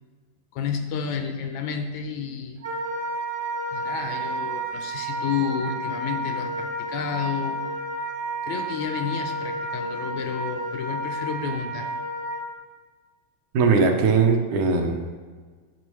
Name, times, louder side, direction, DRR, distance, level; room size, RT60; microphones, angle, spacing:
voice 1, 0.5-2.6 3.7-7.7 8.4-11.9, left 7 dB, 80° left, 5 dB, 1.8 m, -31 dB
Wind instrument woodwind instrument, 2.6-12.5, right 1 dB, 40° right, 0.9 m, -31 dB
voice 2, 13.5-15.1, right 4 dB, 75° right, 3 dB, 2.2 m, -20 dB
12.0 x 6.0 x 3.1 m, 1.5 s
omnidirectional pair, 3.5 m